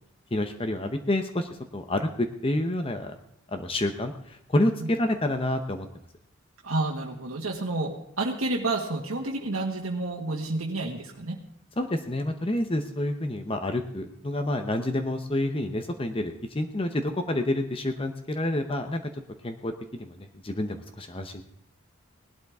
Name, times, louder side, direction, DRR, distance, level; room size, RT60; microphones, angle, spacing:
voice 1, 0.3-3.2 3.5-5.9 11.8-19.1 19.4-21.4, left 1 dB, 25° left, 7 dB, 0.8 m, -28 dB
voice 2, 6.6-11.4, right 2 dB, 85° right, -1 dB, 1.7 m, -30 dB
19.0 x 12.0 x 3.6 m, 0.73 s
head